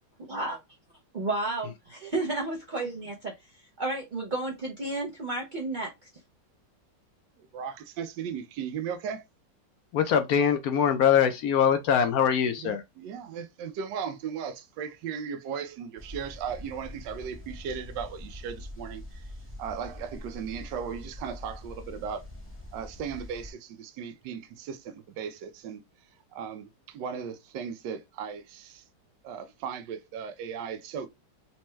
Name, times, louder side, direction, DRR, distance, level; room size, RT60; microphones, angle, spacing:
voice 1, 1.1-3.1 3.4-3.5 3.8-5.9, right 2 dB, 55° right, 0.5 m, -31 dB
voice 2, 7.4-9.2 12.6-19.2 19.6-22.3 22.7-25.8 26.3-28.8 29.2-31.1, right 7 dB, 80° right, 1.3 m, -37 dB
voice 3, 9.9-12.8, left 8 dB, 70° left, 0.9 m, -23 dB
sound 1, 16.0-23.5, left 1 dB, 15° left, 0.4 m, -44 dB
4.2 x 2.2 x 3.0 m
omnidirectional pair, 1.9 m